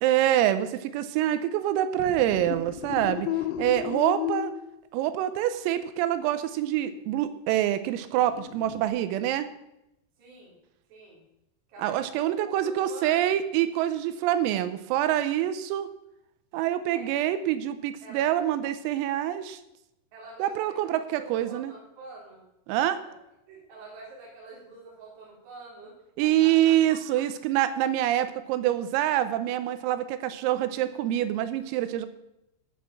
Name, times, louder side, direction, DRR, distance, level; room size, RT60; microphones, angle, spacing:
voice 1, 0.0-3.3 3.6-4.5 4.9-9.5 11.8-15.9 16.5-19.6 20.4-21.7 22.7-23.0 26.2-32.1, right 12 dB, 85° right, 11 dB, 3.4 m, -26 dB
sound 1, 2.0-4.7 8.2-8.9, left 12 dB, 80° left, 3.2 m, -33 dB
voice 2, 10.2-10.5 10.9-11.2 11.7-12.4 12.6-13.2 16.8-17.1 18.0-18.3 20.1-22.4 23.0-23.1 23.5-25.9 26.2-26.7, right 2 dB, 55° right, -5 dB, 5.9 m, -46 dB
14.5 x 6.4 x 7.0 m, 0.86 s
omnidirectional pair, 5.9 m